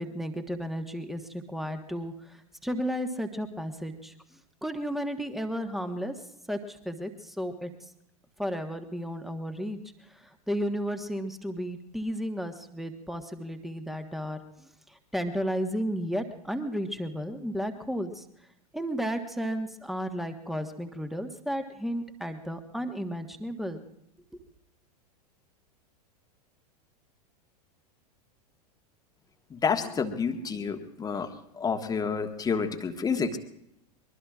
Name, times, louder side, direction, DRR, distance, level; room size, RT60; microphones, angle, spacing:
voice 1, 0.0-6.1 6.5-7.7 8.4-18.3 18.7-23.8, equal, ahead, 7 dB, 1.4 m, -33 dB
voice 2, 29.5-31.3 31.6-33.4, left 5 dB, 20° left, 7 dB, 1.3 m, -29 dB
24.0 x 21.5 x 2.4 m, 0.79 s
figure-of-eight pair, 95°, 20 cm